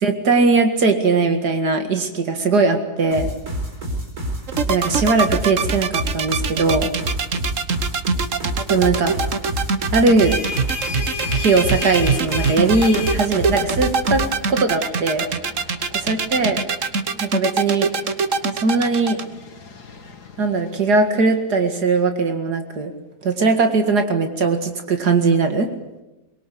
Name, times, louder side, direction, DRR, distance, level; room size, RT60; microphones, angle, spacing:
voice 1, 0.0-3.3 4.7-6.9 8.7-9.1 9.9-10.4 11.3-15.3 16.0-16.6 17.2-17.9 18.5-19.2 20.4-22.9 23.2-25.7, right 3 dB, 85° right, 6 dB, 2.6 m, -19 dB
sound 1, 3.1-14.4, right 1 dB, 70° right, 4.8 m, -28 dB
sound 2, 4.5-19.2, right 5 dB, 55° right, 1.6 m, -23 dB
sound 3, 10.0-21.3, left 6 dB, 80° left, 2.6 m, -35 dB
23.0 x 22.5 x 8.5 m, 0.97 s
omnidirectional pair, 1.7 m